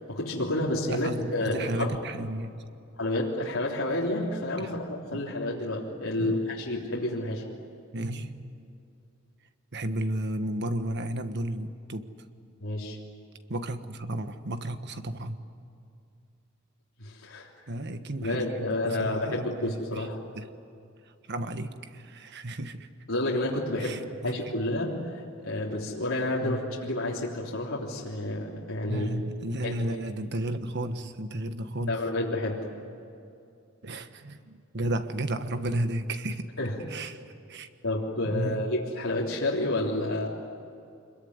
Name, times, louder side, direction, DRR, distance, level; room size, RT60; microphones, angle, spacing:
voice 1, 0.0-1.9 3.0-7.5 12.6-13.0 17.0-17.5 18.2-20.2 23.1-24.0 24.2-29.1 29.6-29.7 31.9-32.7 36.6-36.9 37.8-40.3, left 1 dB, 75° left, -5 dB, 3.4 m, -30 dB
voice 2, 0.6-2.5 4.6-4.7 5.1-5.2 6.2-6.4 7.9-8.5 9.7-12.1 13.5-15.4 17.7-20.1 20.3-20.5 21.3-22.9 23.8-24.3 26.4-26.6 28.9-31.9 33.8-36.5 36.9-37.2 37.5-37.7 38.3-38.6, right 1 dB, 55° right, 9 dB, 1.4 m, -33 dB
26.0 x 22.0 x 9.6 m, 2.5 s
head